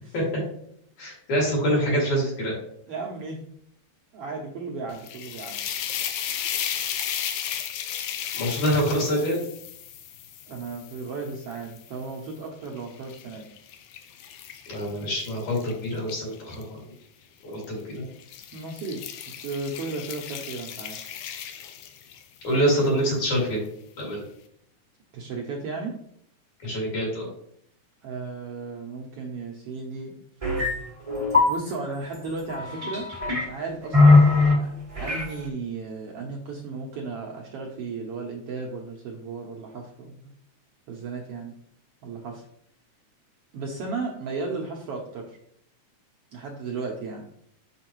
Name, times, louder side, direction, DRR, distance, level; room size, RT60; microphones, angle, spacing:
voice 1, 1.0-2.6 7.2-7.4 8.3-9.4 14.7-16.8 17.4-18.1 22.4-23.7 24.0-24.2 26.6-27.3, equal, 70° left, -4 dB, 3.7 m, -25 dB
voice 2, 2.9-3.4 4.1-5.6 10.5-13.5 18.5-21.0 25.1-26.0 28.0-30.1 31.5-33.0 33.3-40.2 40.9-41.5 42.0-42.4 43.5-45.4 46.3-47.2, right 4 dB, 70° right, 0 dB, 1.4 m, -35 dB
sound 1, 4.9-12.1 12.7-16.6 17.5-17.8 18.2-22.4, left 9 dB, 90° left, 2.0 m, -35 dB
sound 2, 30.4-30.7 31.1-31.5 32.5-33.5 33.9-34.5 34.9-35.3, left 3 dB, 35° right, 0.5 m, -19 dB
6.2 x 5.7 x 3.0 m, 0.69 s
omnidirectional pair, 3.4 m